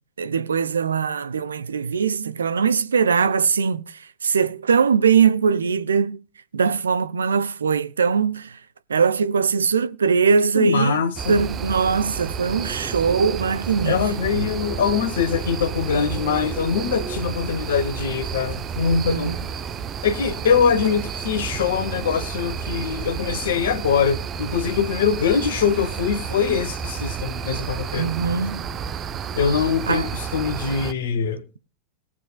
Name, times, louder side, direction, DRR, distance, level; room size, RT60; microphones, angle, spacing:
voice 1, 0.2-6.2 6.5-8.6 8.9-11.0 11.3-14.5 19.0-19.4 28.0-28.7 29.9-30.1, right 6 dB, 70° right, 0.7 m, -21 dB
voice 2, 10.5-11.4 13.8-19.4 20.0-28.1 29.3-31.4, left 6 dB, 60° left, 1.2 m, -23 dB
sound 1, 11.2-30.9, right 7 dB, 25° right, 0.7 m, -31 dB
20.5 x 7.3 x 2.3 m
figure-of-eight pair, 90°, 0 cm